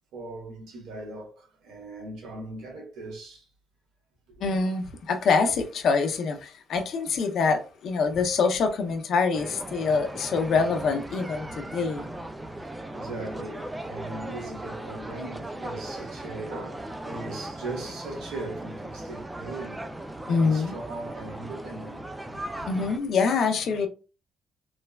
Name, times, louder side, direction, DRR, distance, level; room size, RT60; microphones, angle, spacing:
voice 1, 0.1-3.5 4.3-4.4 12.6-19.9 20.3-22.7, right 2 dB, 85° right, 1.1 m, -39 dB
voice 2, 4.4-12.1 20.3-20.8 22.7-23.9, left 4 dB, 65° left, 0.6 m, -25 dB
sound 1, 9.3-23.0, right 1 dB, 15° right, 0.4 m, -38 dB
3.1 x 2.1 x 2.3 m
cardioid pair, 90°, 0 cm